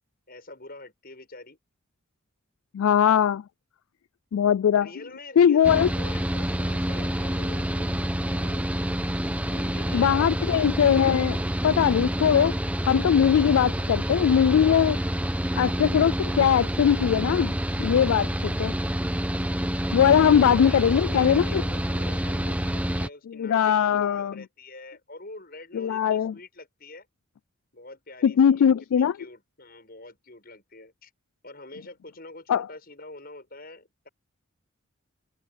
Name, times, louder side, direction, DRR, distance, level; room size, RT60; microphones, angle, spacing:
voice 1, 0.3-1.6 4.8-8.7 9.4-10.2 20.0-27.1 27.7-31.1 31.4-34.1, left 2 dB, 45° left, 7.7 m, -45 dB
voice 2, 2.7-3.4 4.3-4.9 5.4-5.9 9.9-11.4 11.6-12.5 12.8-15.0 15.6-17.5 17.8-18.7 19.9-21.6 23.4-24.3 25.7-26.3 28.2-29.2 32.5-32.7, left 8 dB, 75° left, 0.3 m, -20 dB
Mechanical fan, 5.6-23.1, equal, 5° right, 1.3 m, -28 dB
head